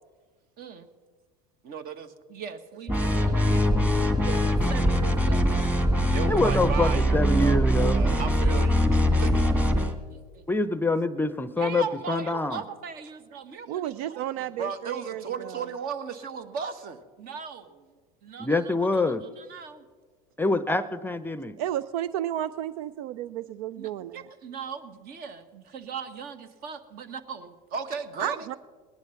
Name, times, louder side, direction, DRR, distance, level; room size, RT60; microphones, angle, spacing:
voice 1, 0.6-0.9 1.6-3.6 4.2-5.5 5.9-9.5 10.1-10.4 11.6-17.8 18.2-19.8 23.8-28.5, right 6 dB, 50° right, 10 dB, 1.5 m, -37 dB
sound 1, 2.9-9.9, equal, 5° right, 1.7 m, -22 dB
voice 2, 6.3-8.0 10.5-12.6 18.4-19.2 20.4-21.6, left 3 dB, 10° left, 14 dB, 0.7 m, -25 dB
voice 3, 13.7-15.7 21.6-24.2 28.2-28.5, right 11 dB, 70° right, 16 dB, 0.5 m, -32 dB
19.5 x 10.5 x 5.8 m, 1.5 s
hypercardioid pair, 90°, 20 cm